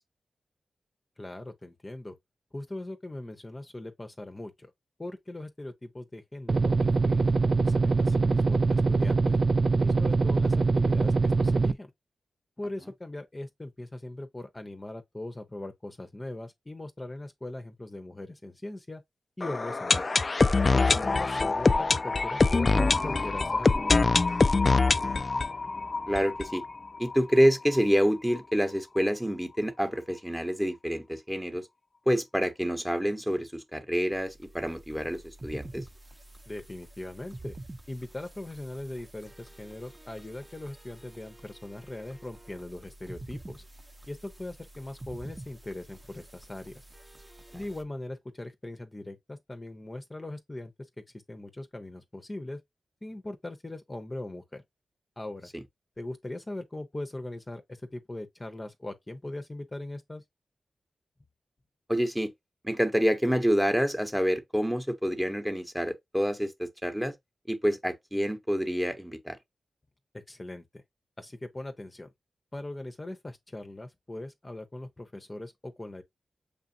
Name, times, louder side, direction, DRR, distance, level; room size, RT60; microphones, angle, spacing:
voice 1, 1.2-2.2 2.5-4.7 5.0-9.4 9.8-11.9 12.6-19.0 19.4-20.1 20.8-24.2 36.5-37.6 37.9-43.6 44.1-46.8 47.5-52.6 53.0-54.6 55.2-55.5 56.0-60.2 70.3-70.8 71.2-72.1 72.5-76.0, left 1 dB, 30° left, 0.8 m, -40 dB
sound 1, 6.5-11.7, right 3 dB, 55° right, 0.3 m, -23 dB
sound 2, 19.4-27.2 27.4-27.5 27.7-27.8 28.4-28.5, left 3 dB, 45° left, 0.4 m, -24 dB
voice 2, 26.1-26.6 27.0-31.7 32.1-35.8 61.9-62.3 62.6-67.1 67.5-69.4, equal, 5° right, 1.0 m, -27 dB
sound 3, 34.1-47.8, right 1 dB, 25° right, 0.8 m, -48 dB
6.6 x 2.5 x 2.6 m
cardioid pair, 50°, 0 cm